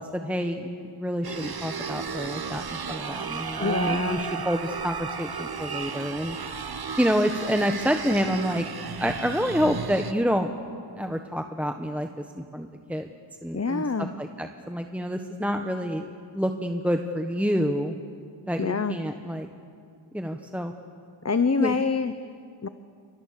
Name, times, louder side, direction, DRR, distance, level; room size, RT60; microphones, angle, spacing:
voice 1, 0.0-6.4 7.0-8.6 9.0-10.5 11.0-13.1 13.4-16.1 16.3-18.0 18.5-19.5 20.1-20.7 21.6-21.7, equal, 5° right, 5 dB, 1.4 m, -28 dB
sound 1, 1.2-10.1, right 6 dB, 50° right, 1.1 m, -34 dB
voice 2, 3.6-4.2 13.5-14.1 18.6-19.0 21.2-22.1 22.6-22.7, left 4 dB, 35° left, 11 dB, 0.9 m, -25 dB
30.0 x 25.5 x 6.8 m, 2.3 s
wide cardioid pair, 50°, 46 cm